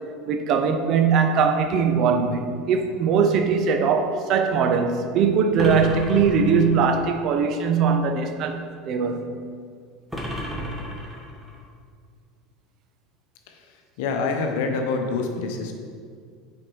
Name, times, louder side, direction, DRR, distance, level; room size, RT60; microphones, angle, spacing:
voice 1, 0.3-9.3, right 5 dB, 50° right, 0.6 m, -21 dB
sound 1, 5.6-7.0 10.1-11.6, left 1 dB, 5° right, 1.3 m, -32 dB
voice 2, 13.5-15.8, left 4 dB, 70° left, 0.8 m, -27 dB
6.0 x 4.3 x 4.6 m
hypercardioid pair, 80°, 0 cm